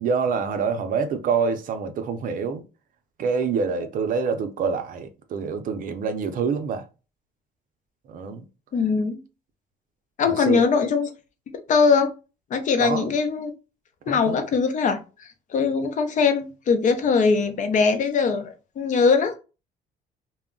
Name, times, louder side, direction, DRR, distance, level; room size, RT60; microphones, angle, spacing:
voice 1, 0.0-2.6 3.2-6.9 8.1-8.4 10.3-10.6 12.8-13.2 14.1-14.4, right 5 dB, 55° right, 0.5 m, -26 dB
voice 2, 8.7-9.2 10.2-11.1 11.5-12.1 12.5-13.5 14.1-19.3, left 5 dB, 50° left, 0.6 m, -21 dB
2.3 x 2.0 x 3.6 m
cardioid pair, 110°, 17 cm